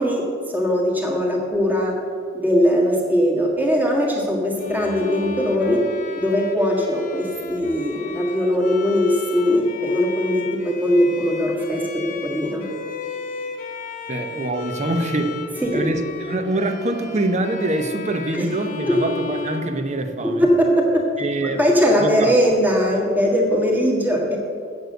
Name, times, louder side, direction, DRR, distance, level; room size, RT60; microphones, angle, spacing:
voice 1, 0.0-1.9 2.3-5.8 6.2-12.6 15.6-15.8 18.3-18.5 18.9-19.0 20.2-21.0 21.6-24.4, equal, 10° right, -2 dB, 1.6 m, -20 dB
Bowed string instrument, 4.6-20.5, left 4 dB, 40° left, 1.0 m, -34 dB
voice 2, 14.1-15.3 15.7-20.4 21.2-21.6 22.0-22.3, right 2 dB, 35° right, 7 dB, 0.8 m, -24 dB
7.8 x 7.4 x 7.8 m, 2.2 s
head